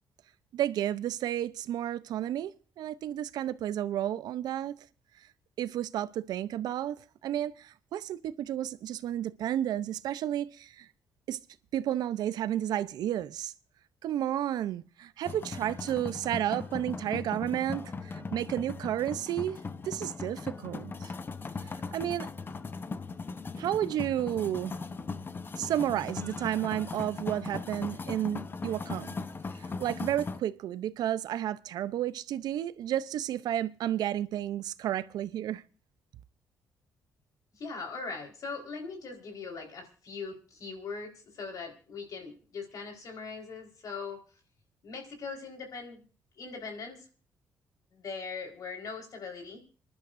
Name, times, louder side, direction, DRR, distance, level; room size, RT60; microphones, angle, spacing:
voice 1, 0.5-4.9 5.6-10.9 11.3-11.4 11.7-13.5 14.0-21.1 21.9-22.3 23.6-24.7 25.6-29.1 29.8-35.6, right 11 dB, 75° right, 0.7 m, -32 dB
sound 1, 15.2-30.4, left 4 dB, 30° left, 0.8 m, -39 dB
voice 2, 37.5-44.2 44.8-46.1 46.4-47.1 47.9-49.6, left 4 dB, 60° left, 4.3 m, -40 dB
27.0 x 11.5 x 2.6 m
cardioid pair, 80°, 7 cm